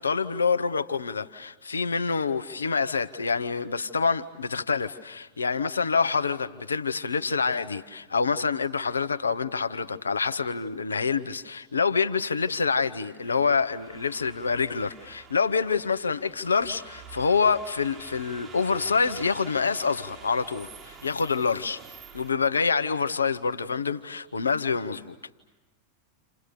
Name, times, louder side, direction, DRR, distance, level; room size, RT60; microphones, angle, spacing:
voice 1, 0.0-21.8 22.1-25.1, left 5 dB, 75° left, 1.1 m, -26 dB
sound 1, 13.2-22.3, right 5 dB, 25° right, 2.1 m, -48 dB
30.0 x 29.0 x 6.8 m
figure-of-eight pair, 90°, 0 cm